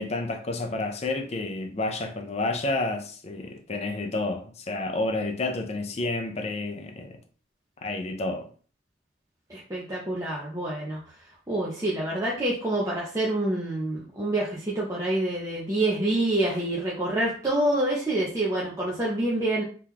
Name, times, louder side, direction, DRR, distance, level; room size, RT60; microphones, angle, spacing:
voice 1, 0.0-7.2 7.8-8.5, left 2 dB, 35° left, 0.4 m, -30 dB
voice 2, 9.5-11.0 11.5-19.6, right 1 dB, 15° right, 0.6 m, -27 dB
2.9 x 2.4 x 3.5 m
head